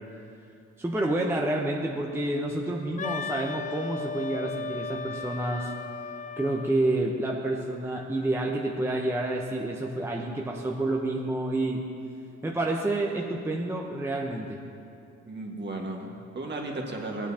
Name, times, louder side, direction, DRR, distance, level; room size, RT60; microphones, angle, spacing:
voice 1, 0.8-5.7 6.4-11.8 12.4-14.6, right 2 dB, 10° right, -1 dB, 0.8 m, -29 dB
Wind instrument woodwind instrument, 3.0-6.8, left 4 dB, 25° left, 0.4 m, -36 dB
voice 2, 15.3-17.3, right 2 dB, 35° right, 0 dB, 1.6 m, -34 dB
17.0 x 9.1 x 2.8 m, 2.7 s
cardioid pair, 90°, 30 cm